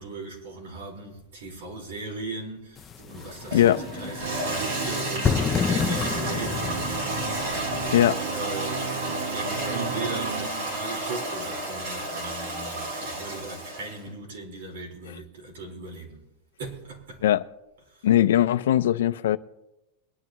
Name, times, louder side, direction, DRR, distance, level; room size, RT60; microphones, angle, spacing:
voice 1, 0.0-7.4 7.8-8.9 9.3-16.2 16.6-17.2, right 3 dB, 75° right, 4.4 m, -38 dB
sound 1, 2.8-7.9, left 7 dB, 15° left, 0.5 m, -30 dB
Toilet flush, 3.0-14.0, right 1 dB, 60° right, 4.9 m, -32 dB
voice 2, 3.5-3.8 7.9-8.2 17.2-17.4 18.0-19.4, left 12 dB, 85° left, 0.6 m, -20 dB
sound 2, 4.2-10.5, right 7 dB, 90° right, 1.0 m, -34 dB
23.0 x 11.0 x 3.1 m
supercardioid pair, 170°, 0 cm